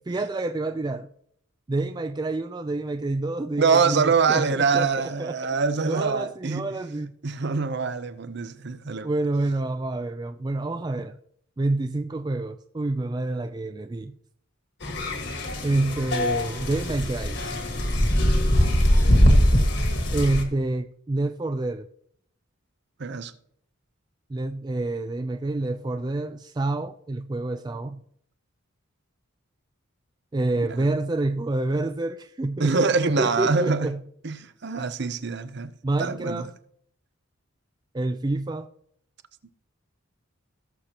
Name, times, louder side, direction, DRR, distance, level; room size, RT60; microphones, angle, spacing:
voice 1, 0.1-1.1 1.7-5.5 5.9-7.1 8.9-11.2 11.6-14.1 15.6-17.4 20.1-21.9 24.3-28.0 30.3-34.0 35.8-36.5 37.9-38.7, right 2 dB, 20° right, 0.3 m, -28 dB
voice 2, 3.6-6.8 7.2-9.1 23.0-23.3 30.6-30.9 32.6-33.9 34.2-35.7 36.0-36.5, right 4 dB, 50° right, 0.6 m, -24 dB
sound 1, 14.8-20.4, equal, 55° left, 1.7 m, -21 dB
18.0 x 6.7 x 2.9 m
head